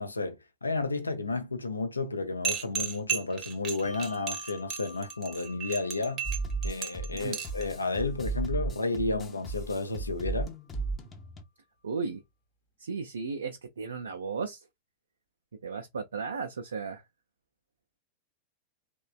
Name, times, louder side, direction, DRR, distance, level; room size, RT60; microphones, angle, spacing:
voice 1, 0.0-6.3 6.6-10.5, left 3 dB, 80° left, 0.4 m, -32 dB
sound 1, 2.4-7.6, right 7 dB, 35° right, 0.7 m, -34 dB
Bell, 3.8-10.7, left 4 dB, 45° left, 0.9 m, -52 dB
sound 2, 6.2-11.4, right 3 dB, 25° left, 0.6 m, -35 dB
voice 2, 11.8-12.2 12.8-14.6 15.6-17.0, right 5 dB, 70° right, 0.3 m, -35 dB
3.1 x 2.1 x 2.3 m
figure-of-eight pair, 90°, 0 cm